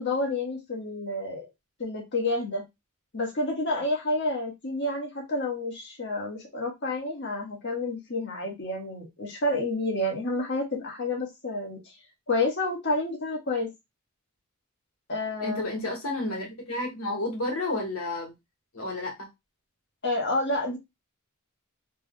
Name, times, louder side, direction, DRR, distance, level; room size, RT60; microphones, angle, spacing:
voice 1, 0.0-1.5 1.8-2.6 3.1-11.9 12.3-13.7 15.1-15.9 20.0-20.8, left 2 dB, 50° left, 0 dB, 1.3 m, -29 dB
voice 2, 15.4-18.3 18.7-19.3, left 2 dB, 75° left, 0 dB, 1.6 m, -31 dB
3.3 x 2.3 x 3.6 m, 0.20 s
head